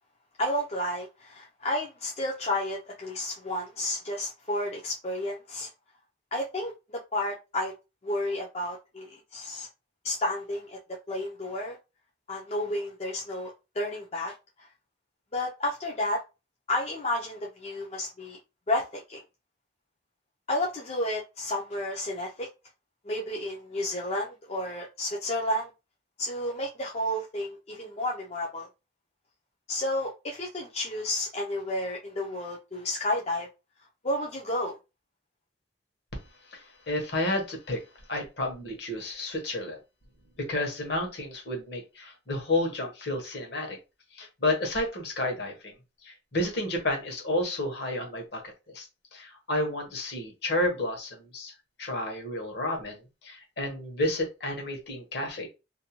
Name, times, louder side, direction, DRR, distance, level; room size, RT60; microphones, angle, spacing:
voice 1, 0.4-5.7 6.3-7.7 8.0-9.7 10.0-10.8 11.1-11.8 12.3-14.7 15.3-16.2 16.7-18.4 18.7-19.2 20.5-22.5 23.0-25.7 26.2-28.7 29.7-33.5 34.0-34.8, left 1 dB, 35° left, 0.4 m, -31 dB
voice 2, 36.9-37.8 38.1-39.8 40.5-43.8 44.2-45.7 46.0-48.4 48.7-48.9 49.1-51.5 51.8-53.0 53.2-55.5, left 1 dB, 65° left, 1.0 m, -31 dB
2.6 x 2.1 x 2.9 m
head